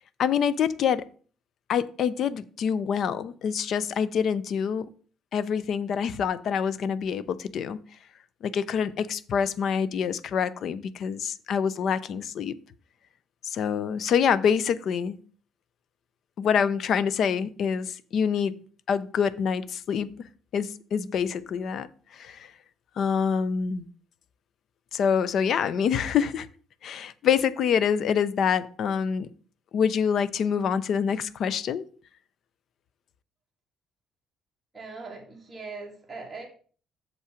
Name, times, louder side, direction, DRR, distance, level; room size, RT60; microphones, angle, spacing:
voice 1, 0.2-1.1 1.7-4.9 5.3-7.8 8.4-12.6 13.4-15.2 16.4-18.6 18.9-20.2 20.5-21.9 22.1-22.5 23.0-23.9 24.9-26.5 26.8-29.3 29.7-31.9, left 7 dB, 45° left, 0.4 m, -26 dB
voice 2, 34.7-36.5, right 3 dB, 10° right, 1.9 m, -40 dB
6.8 x 5.5 x 5.0 m
cardioid pair, 180°, 0 cm